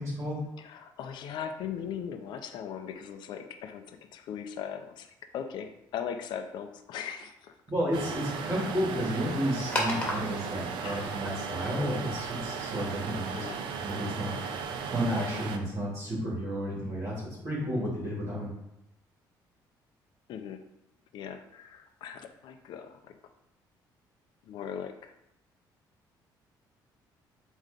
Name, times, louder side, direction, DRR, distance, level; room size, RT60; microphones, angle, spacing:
voice 1, 0.0-0.4 7.7-13.5 13.8-14.3 14.9-18.5, equal, 40° right, -7 dB, 2.7 m, -32 dB
voice 2, 0.6-7.5 10.8-11.1 13.3-13.6 20.3-20.6 21.1-23.1 24.5-25.1, left 8 dB, 70° left, 7 dB, 0.6 m, -39 dB
sound 1, 7.9-15.6, right 6 dB, 85° right, 0.8 m, -36 dB
sound 2, 9.6-15.7, left 1 dB, 15° left, 1.9 m, -39 dB
7.5 x 3.1 x 5.2 m, 0.84 s
cardioid pair, 140°, 8 cm